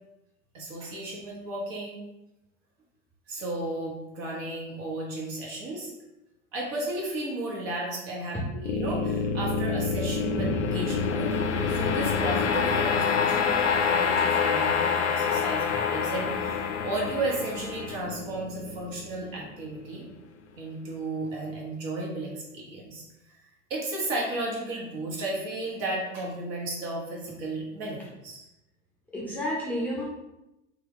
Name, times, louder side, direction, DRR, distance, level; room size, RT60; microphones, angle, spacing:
voice 1, 0.5-2.1 3.3-5.9 6.5-20.1 20.6-23.4 23.7-28.5, right 2 dB, 50° right, -2 dB, 1.1 m, -34 dB
Low Dive Bomb Drones, 8.6-19.8, left 5 dB, 70° left, 0.5 m, -27 dB
voice 2, 29.1-30.0, equal, 5° left, -6 dB, 0.7 m, -31 dB
3.2 x 2.4 x 3.1 m, 0.93 s
figure-of-eight pair, 80°, 38 cm